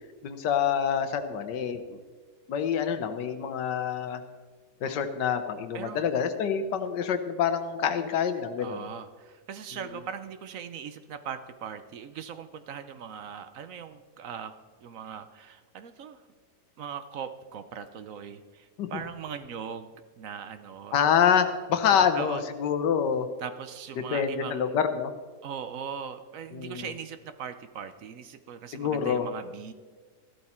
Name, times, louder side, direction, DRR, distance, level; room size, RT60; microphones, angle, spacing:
voice 1, 0.2-2.0 2.5-4.2 4.8-8.9 18.8-18.9 20.9-23.3 24.0-25.1 26.5-26.9 28.7-29.3, left 7 dB, 85° left, 9 dB, 1.5 m, -26 dB
voice 2, 5.7-6.0 8.6-16.2 16.8-19.9 20.2-21.0 21.9-22.4 23.4-24.8 25.4-29.7, right 7 dB, 60° right, 11 dB, 1.0 m, -40 dB
14.5 x 12.0 x 4.3 m, 1.4 s
omnidirectional pair, 1.8 m